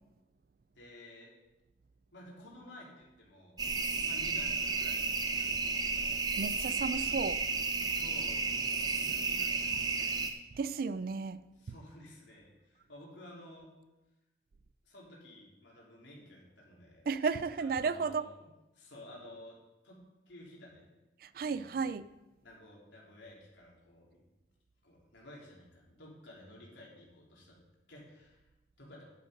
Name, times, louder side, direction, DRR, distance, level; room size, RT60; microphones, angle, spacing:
voice 1, 0.8-1.3 2.1-3.6 4.1-5.1 5.4-6.2 7.9-10.3 11.6-13.7 14.8-17.0 17.6-18.5 18.7-19.6 19.8-20.0 20.3-20.9 21.4-21.8 22.4-24.2 24.8-27.6 27.9-28.4 28.8-29.1, left 1 dB, 75° left, 3.5 m, -53 dB
sound 1, 3.6-10.3, right 4 dB, 20° right, 0.7 m, -32 dB
voice 2, 6.4-7.5 10.5-11.4 17.1-18.3 21.2-22.1, right 5 dB, 50° right, 0.4 m, -33 dB
10.5 x 8.2 x 5.2 m
head